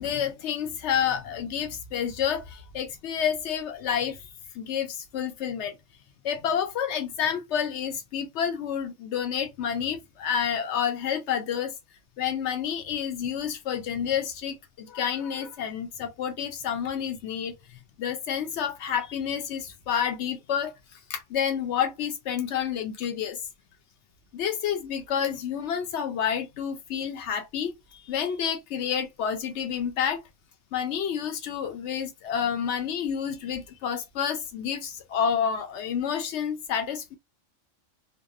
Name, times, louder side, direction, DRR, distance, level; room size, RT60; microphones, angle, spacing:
voice 1, 0.0-4.2 4.5-5.8 6.2-11.7 12.2-23.4 24.3-30.2 30.7-37.2, left 8 dB, 70° left, 0.8 m, -29 dB
2.6 x 2.0 x 2.4 m
omnidirectional pair, 1.3 m